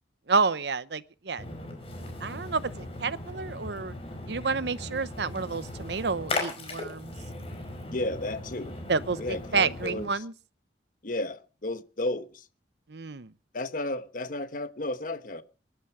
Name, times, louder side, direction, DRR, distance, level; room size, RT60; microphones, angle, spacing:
voice 1, 0.3-1.6 2.2-3.9 4.3-7.1 8.9-10.3 12.9-13.3, right 4 dB, 65° right, 0.8 m, -29 dB
Splash splatter, 1.4-10.1, left 2 dB, 35° left, 5.2 m, -38 dB
voice 2, 7.9-8.8 9.2-10.2 11.0-12.5 13.5-15.4, left 2 dB, 50° left, 1.2 m, -33 dB
23.5 x 11.5 x 4.9 m
head